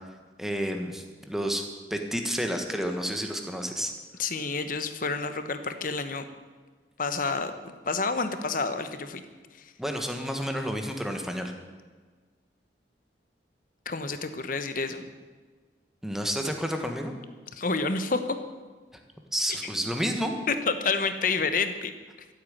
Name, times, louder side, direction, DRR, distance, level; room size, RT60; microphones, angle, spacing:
voice 1, 0.4-3.9 9.8-11.5 16.0-17.1 19.3-20.4, equal, ahead, 4 dB, 1.4 m, -30 dB
voice 2, 4.2-6.2 7.0-9.2 13.9-15.1 17.6-18.4 20.5-21.9, left 4 dB, 50° left, 9 dB, 1.1 m, -29 dB
14.0 x 8.4 x 8.7 m, 1.4 s
head